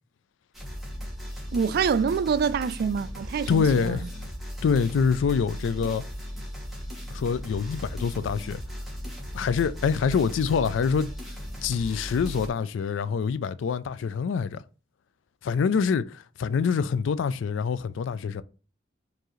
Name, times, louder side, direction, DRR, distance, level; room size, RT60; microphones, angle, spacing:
sound 1, 0.5-12.5, equal, ahead, 1.2 m, -37 dB
voice 1, 1.5-4.0, right 6 dB, 55° right, 0.3 m, -26 dB
voice 2, 3.5-4.1 4.6-6.0 7.1-8.6 9.3-11.1 11.6-14.6 15.4-18.4, left 6 dB, 80° left, 0.3 m, -25 dB
4.6 x 2.6 x 3.0 m
head